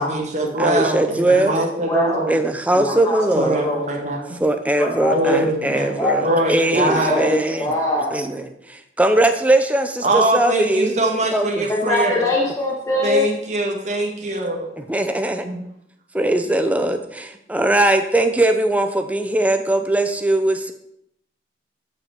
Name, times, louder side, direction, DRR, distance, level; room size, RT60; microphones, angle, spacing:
voice 1, 0.0-2.3 2.7-2.9 3.3-4.2 5.1-5.9 6.2-7.2 10.0-12.2 13.0-14.7 15.4-15.6, right 1 dB, 40° right, 0 dB, 1.7 m, -22 dB
voice 2, 0.6-1.6 2.3-3.6 4.4-7.7 8.1-11.0 11.3-11.7 14.8-15.5 16.1-20.7, right 1 dB, 10° right, 7 dB, 0.6 m, -20 dB
voice 3, 1.8-2.2 2.8-3.9 4.8-5.4 6.0-6.4 7.1-8.2 11.7-13.3, left 1 dB, 20° left, -3 dB, 1.4 m, -23 dB
12.5 x 5.7 x 4.4 m, 0.76 s
head